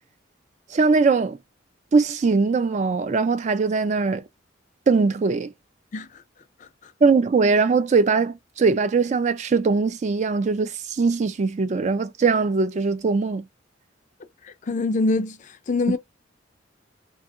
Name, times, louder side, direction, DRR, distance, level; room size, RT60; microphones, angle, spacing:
voice 1, 0.7-1.4 1.9-4.2 4.9-5.5 7.0-13.4, right 4 dB, 40° right, 0.4 m, -21 dB
voice 2, 5.9-6.2 6.8-6.9 14.4-16.0, left 3 dB, 40° left, 0.4 m, -25 dB
2.7 x 2.7 x 2.3 m
head